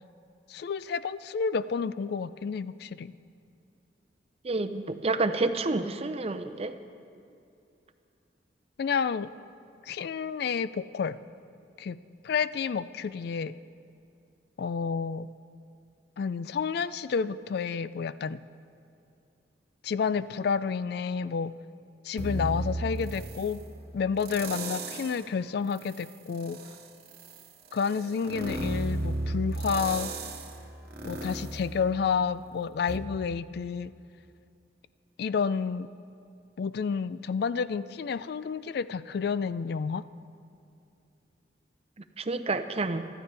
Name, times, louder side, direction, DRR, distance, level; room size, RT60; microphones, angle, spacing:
voice 1, 0.5-3.1 8.8-9.3 9.9-11.2 11.8-13.5 14.6-15.3 16.2-18.4 19.8-21.5 22.0-23.6 23.9-26.6 27.7-30.1 31.0-33.9 35.2-35.9 36.6-40.0, left 6 dB, 60° left, 15 dB, 0.3 m, -30 dB
voice 2, 4.4-6.7 42.2-43.0, right 3 dB, 35° right, 9 dB, 0.6 m, -29 dB
sound 1, 22.2-23.6 24.2-25.3 25.7-32.4 32.9-33.0, right 2 dB, 60° right, 1.3 m, -35 dB
24.0 x 13.5 x 3.3 m, 2.6 s
head